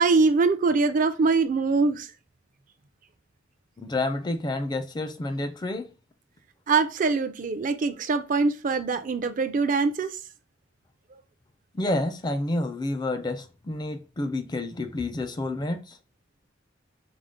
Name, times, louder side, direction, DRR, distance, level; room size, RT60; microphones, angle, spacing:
voice 1, 0.0-2.1 6.7-10.1, right 4 dB, 45° right, 0.4 m, -23 dB
voice 2, 3.8-5.9 11.7-15.8, left 2 dB, 20° left, 0.4 m, -29 dB
5.0 x 2.1 x 3.6 m
head